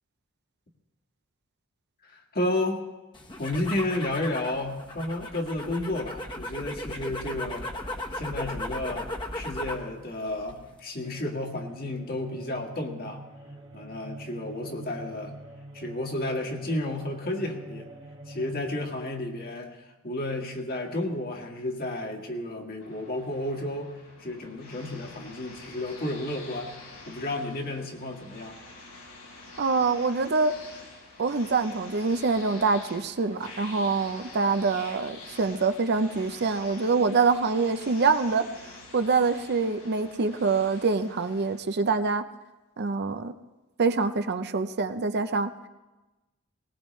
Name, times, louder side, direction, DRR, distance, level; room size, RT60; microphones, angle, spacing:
voice 1, 2.0-2.8 3.4-7.7 8.1-13.2 13.7-15.4 15.7-17.9 18.3-23.9 24.2-26.8 27.1-28.5, left 1 dB, 45° left, 2 dB, 1.8 m, -32 dB
sound 1, 3.1-9.9 10.2-10.8, left 1 dB, 25° left, 1.2 m, -36 dB
sound 2, 11.0-19.2, right 1 dB, 25° right, 1.6 m, -44 dB
sound 3, 22.8-41.6, left 2 dB, 90° left, 4.3 m, -47 dB
voice 2, 29.6-30.5 31.2-38.4 38.9-42.2 42.8-43.3 43.8-45.5, right 4 dB, 50° right, 9 dB, 0.6 m, -25 dB
19.0 x 18.5 x 3.2 m, 1.1 s
head